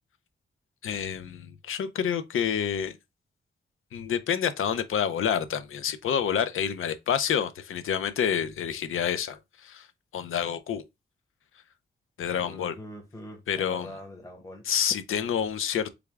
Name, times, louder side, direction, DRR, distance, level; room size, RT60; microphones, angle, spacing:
voice 1, 0.8-3.0 3.9-9.9 10.1-10.8 12.2-12.7 13.5-13.9 14.7-15.9, left 8 dB, 80° left, 0.6 m, -28 dB
voice 2, 12.4-14.7, left 1 dB, 15° left, 1.0 m, -43 dB
3.6 x 3.4 x 3.4 m
wide cardioid pair, 160°, 21 cm